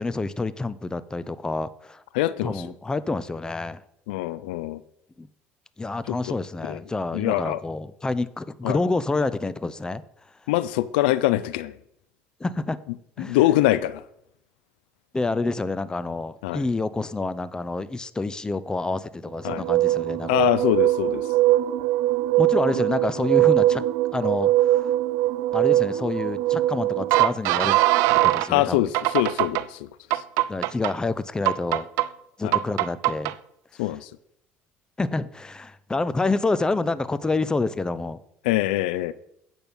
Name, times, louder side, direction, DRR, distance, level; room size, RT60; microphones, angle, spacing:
voice 1, 0.0-2.0 2.4-3.8 5.2-5.3 5.8-10.0 12.4-12.8 13.2-13.4 15.1-20.5 22.4-23.8 24.1-24.9 25.5-27.8 28.1-28.9 30.5-31.9 32.4-33.3 35.0-38.2, left 3 dB, 15° left, 0.6 m, -28 dB
voice 2, 2.1-2.5 4.1-4.8 6.1-6.4 6.6-6.8 7.1-7.6 8.6-8.8 10.5-11.8 13.2-14.0 16.4-16.6 19.4-19.6 20.3-21.3 28.5-29.9 30.1-30.2 32.4-32.6 33.8-34.1 38.4-39.1, left 15 dB, 90° left, 0.4 m, -24 dB
sound 1, 19.5-28.5 28.9-29.6 30.1-30.9 31.5-32.1 32.5-33.3, right 15 dB, 75° right, 0.4 m, -21 dB
8.7 x 6.1 x 5.3 m
supercardioid pair, 90°, 5 cm